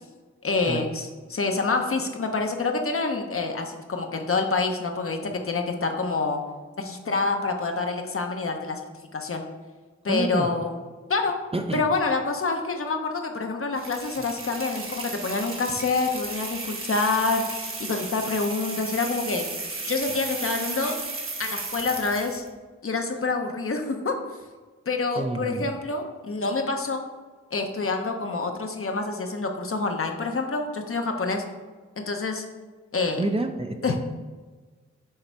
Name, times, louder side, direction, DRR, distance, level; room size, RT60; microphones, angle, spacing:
voice 1, 0.4-6.4 6.8-8.8 9.1-9.4 10.0-10.8 11.1-11.3 11.7-17.4 17.8-19.4 19.9-21.0 21.4-22.4 22.8-24.2 24.9-27.0 27.5-31.4 32.0-32.4 32.9-33.2 33.8-34.0, left 3 dB, 50° left, 4 dB, 0.9 m, -27 dB
voice 2, 10.1-10.5 11.5-11.8 25.2-25.7 33.2-34.0, right 2 dB, 20° right, 5 dB, 0.6 m, -28 dB
sound 1, 13.8-22.5, right 3 dB, 45° right, 1.2 m, -34 dB
6.6 x 3.2 x 4.6 m, 1.4 s
cardioid pair, 50°, 29 cm